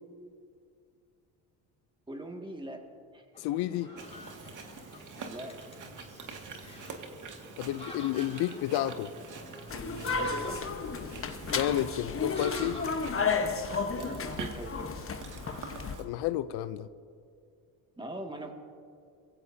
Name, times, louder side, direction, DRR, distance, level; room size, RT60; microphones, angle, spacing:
voice 1, 2.1-2.8 3.1-3.2 5.2-5.6 10.2-10.6 13.9-14.9 18.0-18.5, right 1 dB, 10° right, 2 dB, 2.1 m, -41 dB
sound 1, 3.3-13.6, left 1 dB, 15° left, 3.8 m, -48 dB
voice 2, 3.4-3.9 7.6-9.1 11.5-12.9 16.0-16.9, left 12 dB, 65° left, 14 dB, 0.6 m, -31 dB
Chewing mastication, 3.9-16.0, right 4 dB, 45° right, 2.1 m, -45 dB
sound 2, 9.7-16.0, left 5 dB, 30° left, 1.2 m, -33 dB
22.5 x 15.5 x 2.8 m, 2.3 s
supercardioid pair, 80°, 41 cm